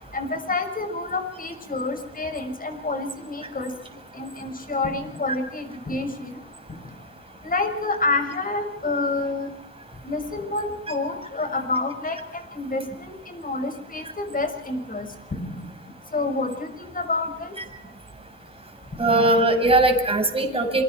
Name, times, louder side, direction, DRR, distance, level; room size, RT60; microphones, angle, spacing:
voice 1, 0.1-3.7 4.1-6.4 7.4-9.5 10.0-15.1 15.3-15.7 16.1-17.5 19.1-19.2, left 3 dB, 30° left, 5 dB, 6.0 m, -28 dB
voice 2, 19.0-20.8, right 2 dB, 20° right, 3 dB, 6.2 m, -20 dB
27.5 x 22.5 x 4.6 m, 0.83 s
cardioid pair, 90°, 30 cm